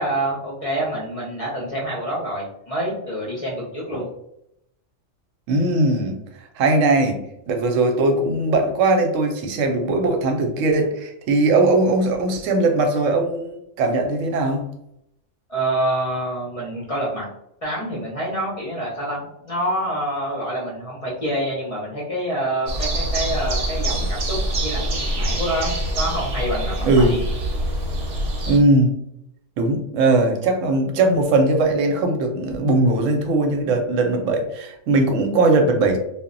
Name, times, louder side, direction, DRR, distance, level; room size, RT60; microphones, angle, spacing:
voice 1, 0.0-4.1 15.5-17.3 17.6-24.9 25.1-27.2, right 1 dB, 40° left, -4 dB, 0.5 m, -27 dB
voice 2, 5.5-6.2 6.6-7.2 7.5-14.7 26.8-27.2 28.5-28.9 29.6-36.0, right 2 dB, 90° right, 4 dB, 0.9 m, -19 dB
sound 1, 22.7-28.6, right 1 dB, 60° right, 0.8 m, -25 dB
2.1 x 2.0 x 3.7 m, 0.78 s
omnidirectional pair, 1.3 m